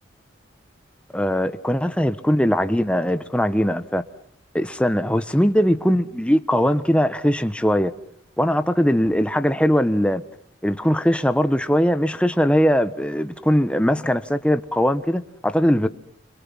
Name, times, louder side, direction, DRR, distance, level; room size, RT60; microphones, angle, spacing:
voice 1, 1.1-4.0 4.5-7.9 8.4-10.2 10.6-15.9, equal, 5° left, 1.2 m, -20 dB
28.5 x 26.0 x 5.7 m
head